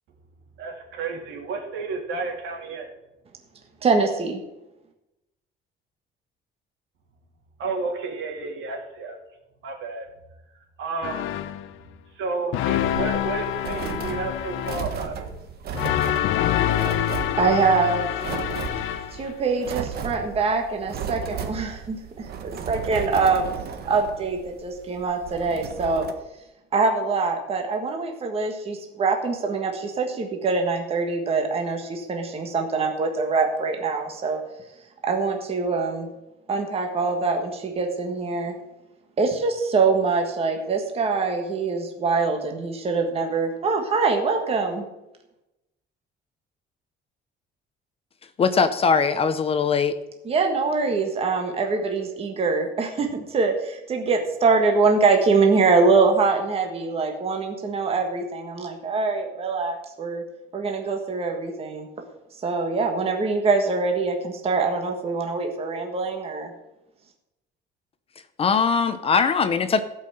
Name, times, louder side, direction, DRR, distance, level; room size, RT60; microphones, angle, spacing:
voice 1, 0.6-2.9 7.6-9.2 9.6-10.1 10.8-11.3 12.1-15.3, right 4 dB, 70° right, 1 dB, 3.1 m, -31 dB
voice 2, 3.8-4.4 17.4-18.1 19.1-23.5 23.8-26.1 26.7-34.4 35.0-36.1 36.5-38.5 39.2-44.8 50.2-60.2 60.5-61.9 62.4-66.5, right 4 dB, 30° right, 3 dB, 1.5 m, -24 dB
sound 1, 11.0-11.7 12.5-15.0 15.7-19.3, left 12 dB, 85° left, 0.8 m, -26 dB
sound 2, 12.8-26.1, right 7 dB, 50° right, 1.3 m, -35 dB
voice 3, 48.4-50.0 68.4-69.8, left 5 dB, 30° left, 10 dB, 0.7 m, -21 dB
16.0 x 5.7 x 7.8 m, 0.94 s
cardioid pair, 180°, 20 cm